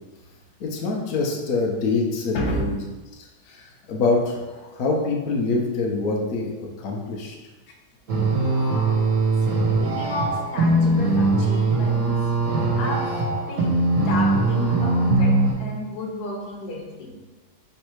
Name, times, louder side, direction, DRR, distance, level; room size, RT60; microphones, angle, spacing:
voice 1, 0.6-2.8 3.5-7.4, left 3 dB, 85° left, -1 dB, 0.8 m, -25 dB
voice 2, 2.3-2.7 9.4-9.5 9.8-12.3 12.8-13.1 13.5-17.1, left 1 dB, 65° left, 0 dB, 1.0 m, -32 dB
sound 1, 8.1-15.5, right 2 dB, 45° right, 1.4 m, -21 dB
3.5 x 3.2 x 4.5 m, 1.2 s
omnidirectional pair, 2.3 m